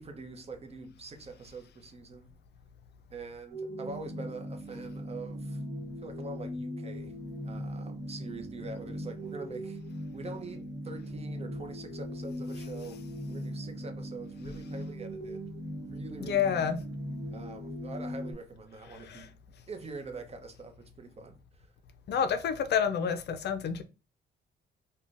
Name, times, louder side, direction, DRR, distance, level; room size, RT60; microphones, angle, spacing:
voice 1, 0.0-2.3 3.1-5.6 6.0-7.2 7.4-9.8 10.1-13.0 13.3-15.5 15.8-16.4 17.3-19.4 19.7-21.7, right 3 dB, 30° right, 0.6 m, -44 dB
sound 1, 3.5-18.3, equal, 65° right, 1.1 m, -39 dB
voice 2, 16.2-16.8 18.9-19.3 22.1-23.8, left 7 dB, 60° left, 0.4 m, -29 dB
3.6 x 2.2 x 2.4 m
cardioid pair, 90°, 20 cm